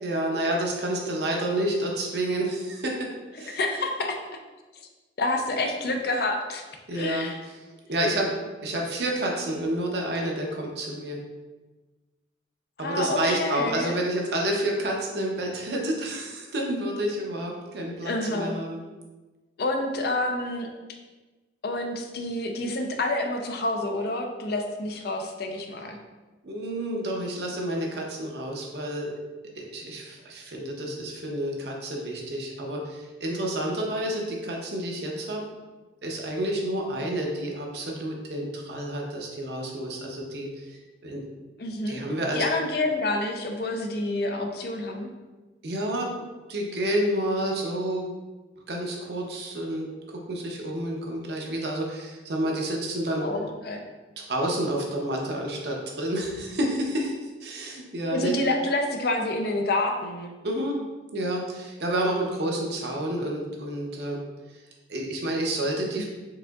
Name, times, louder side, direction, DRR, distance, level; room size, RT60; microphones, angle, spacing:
voice 1, 0.0-3.1 3.4-3.6 6.9-7.5 7.9-8.3 8.6-11.2 12.8-18.8 26.4-29.1 29.5-35.4 36.0-41.2 41.9-42.4 45.6-46.1 46.5-48.0 48.7-53.2 54.2-57.1 57.4-58.3 60.4-60.8 61.1-64.2 64.9-66.0, right 1 dB, 60° right, 0 dB, 0.7 m, -29 dB
voice 2, 3.4-4.2 5.2-6.6 6.9-7.4 12.8-13.9 18.0-18.6 19.6-20.7 21.6-26.0 41.6-42.1 42.3-45.1 53.2-53.8 58.1-60.4 66.0-66.1, left 2 dB, 55° left, 3 dB, 0.4 m, -28 dB
4.8 x 3.6 x 2.3 m, 1.2 s
head